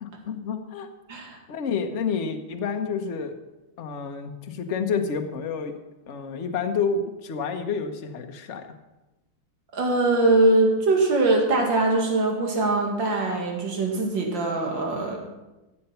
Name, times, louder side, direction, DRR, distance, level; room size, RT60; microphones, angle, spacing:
voice 1, 0.0-0.9 1.5-3.3 3.8-5.7 6.1-8.7, left 5 dB, 45° left, 5 dB, 1.0 m, -29 dB
voice 2, 9.7-15.2, right 2 dB, 55° right, 1 dB, 2.8 m, -22 dB
14.5 x 8.1 x 5.7 m, 1.0 s
omnidirectional pair, 2.4 m